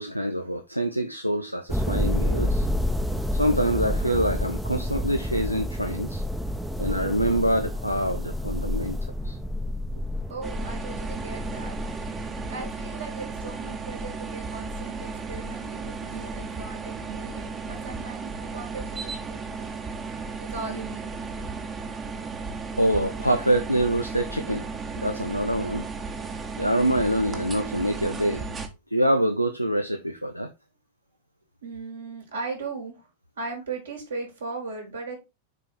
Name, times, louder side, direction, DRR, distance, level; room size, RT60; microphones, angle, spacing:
voice 1, 0.0-2.7 3.3-6.2 6.8-9.0 9.2-9.4 22.8-24.7 24.9-25.9 26.6-28.6 28.9-30.5, right 1 dB, 90° right, 0.6 m, -25 dB
sound 1, 1.7-12.7, left 1 dB, 5° right, 0.8 m, -29 dB
voice 2, 9.6-10.0 10.3-11.8 12.4-19.8 20.4-21.1 31.6-33.1 33.4-35.2, right 4 dB, 70° right, 3.3 m, -38 dB
sound 2, 10.4-28.7, right 4 dB, 20° right, 1.2 m, -35 dB
6.8 x 4.6 x 4.1 m
figure-of-eight pair, 90°, 0 cm